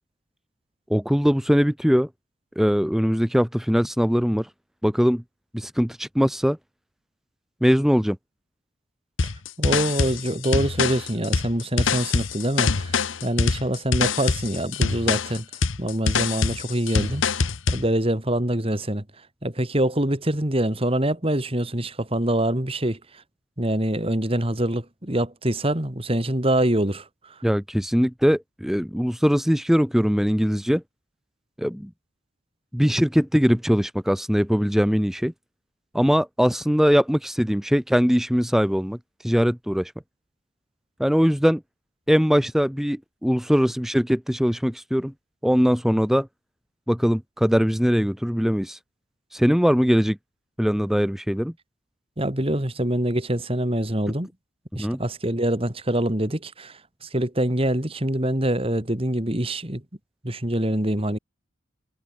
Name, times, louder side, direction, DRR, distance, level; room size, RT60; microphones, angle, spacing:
voice 1, 0.9-2.1 2.6-4.5 4.8-5.2 5.5-6.6 7.6-8.2 27.4-30.8 31.6-31.9 32.7-35.3 35.9-39.0 39.2-39.9 41.0-41.6 42.1-45.1 45.4-46.3 46.9-48.8 49.3-50.2 50.6-51.5 54.8-55.0, equal, ahead, 0.9 m, -21 dB
sound 1, 9.2-17.9, left 4 dB, 70° left, 1.0 m, -24 dB
voice 2, 9.6-15.5 15.8-17.2 17.7-19.0 19.4-23.0 23.6-27.3 52.2-54.3 54.7-59.8 60.2-61.2, right 1 dB, 30° right, 2.3 m, -25 dB
head